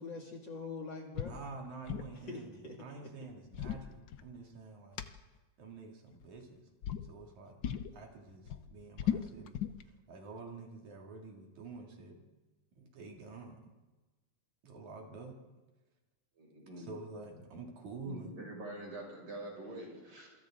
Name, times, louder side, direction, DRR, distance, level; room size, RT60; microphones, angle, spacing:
voice 1, 0.0-1.4 2.2-3.1, left 3 dB, 40° left, 0 dB, 2.9 m, -44 dB
sound 1, 1.2-1.4 1.7-2.2 3.3-4.6 5.0-5.1 6.1-6.5 6.8-7.1 7.6-7.9 8.3-9.8, left 9 dB, 85° left, 1.0 m, -37 dB
voice 2, 1.3-5.0 5.6-6.6 7.1-7.6 7.9-9.6 10.1-12.2 12.8-13.6 14.6-15.4 16.8-18.3, right 3 dB, 80° right, 0 dB, 4.0 m, -48 dB
voice 3, 16.4-16.9 18.0-20.3, right 1 dB, 45° right, -1 dB, 7.2 m, -45 dB
27.5 x 24.5 x 3.9 m, 1.2 s
omnidirectional pair, 3.3 m